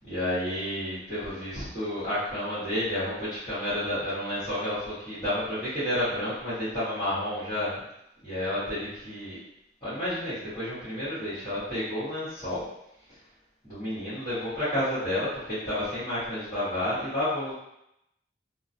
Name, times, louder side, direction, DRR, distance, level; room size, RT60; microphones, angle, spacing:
voice 1, 0.0-7.8 8.2-9.4 9.8-12.7 13.6-17.5, left 1 dB, 25° left, -16 dB, 1.1 m, -30 dB
2.2 x 2.2 x 2.6 m, 0.81 s
head